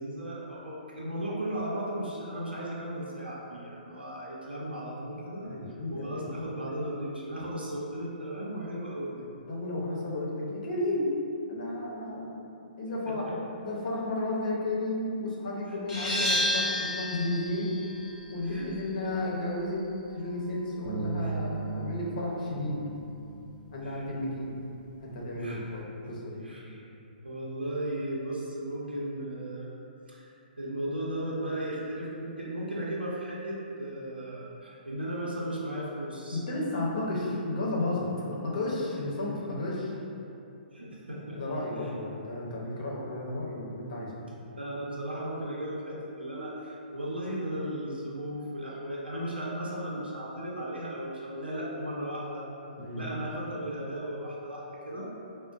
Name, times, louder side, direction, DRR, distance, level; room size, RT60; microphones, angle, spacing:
voice 1, 0.0-5.6 5.9-9.3 13.1-13.4 15.7-15.8 18.4-18.7 21.2-21.3 23.8-24.0 25.4-25.6 26.4-26.8 27.2-29.8 30.1-30.3 30.6-36.4 40.7-41.4 41.8-41.9 44.5-52.5 53.0-55.1, right 1 dB, 85° right, -5 dB, 0.7 m, -36 dB
voice 2, 5.4-6.2 9.5-11.1 11.5-12.4 12.8-13.3 13.6-17.7 18.3-22.8 23.7-24.5 25.0-26.4 31.6-31.8 36.3-40.0 41.4-44.1 52.8-53.1, left 2 dB, 55° left, -4 dB, 0.8 m, -33 dB
sound 1, 15.9-21.3, left 1 dB, 15° left, 1.1 m, -33 dB
sound 2, 20.8-27.1, right 5 dB, 35° right, 0.5 m, -40 dB
4.9 x 2.1 x 2.5 m, 2.8 s
figure-of-eight pair, 125°, 5 cm